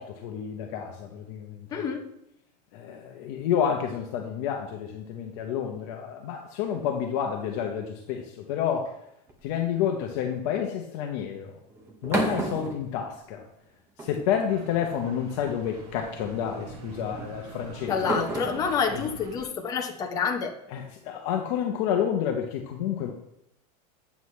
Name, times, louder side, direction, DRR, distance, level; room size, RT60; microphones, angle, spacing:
voice 1, 0.0-1.8 2.7-9.0 9.4-11.6 12.0-13.4 14.0-18.2 18.9-19.0 20.7-23.1, left 8 dB, 50° left, 2 dB, 0.9 m, -29 dB
voice 2, 1.7-2.0 17.9-20.5, left 6 dB, 15° left, 2 dB, 0.8 m, -28 dB
sound 1, 9.3-9.8 11.7-13.6 14.0-14.6 15.7-16.0 17.2-20.5, right 2 dB, 10° right, 0.8 m, -34 dB
sound 2, 14.5-19.4, right 4 dB, 70° right, 1.6 m, -44 dB
8.2 x 7.6 x 3.2 m, 0.82 s
supercardioid pair, 170°, 21 cm